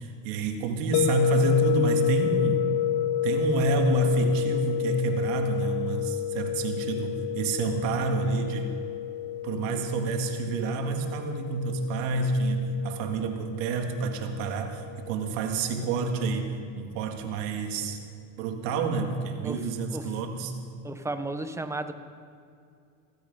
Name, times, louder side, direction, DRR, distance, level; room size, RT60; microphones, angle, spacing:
voice 1, 0.0-2.7 3.2-8.7 9.4-18.0 18.4-20.5, right 3 dB, 90° right, 4 dB, 2.1 m, -28 dB
sound 1, 0.9-15.9, left 12 dB, 70° left, 0.6 m, -30 dB
voice 2, 20.8-21.9, right 2 dB, 10° right, 9 dB, 1.0 m, -33 dB
16.0 x 16.0 x 5.5 m, 2.4 s
supercardioid pair, 120°, 37 cm